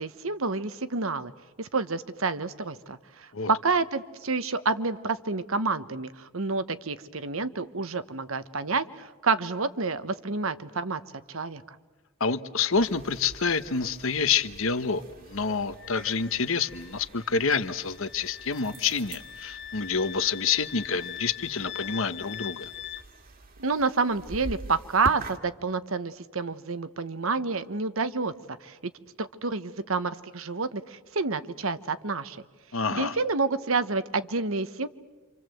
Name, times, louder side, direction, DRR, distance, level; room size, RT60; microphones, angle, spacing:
voice 1, 0.0-1.3 1.6-11.0 11.3-11.6 23.6-28.9 29.2-32.4 32.9-34.9, right 4 dB, 75° right, 12 dB, 1.2 m, -29 dB
voice 2, 12.2-15.0 15.3-22.7 32.7-33.2, left 5 dB, 70° left, 12 dB, 1.1 m, -27 dB
sound 1, 12.7-25.4, right 2 dB, 45° right, 2.0 m, -45 dB
Wind instrument woodwind instrument, 15.8-23.0, left 11 dB, 55° left, 1.3 m, -42 dB
28.0 x 27.0 x 7.8 m, 1.2 s
head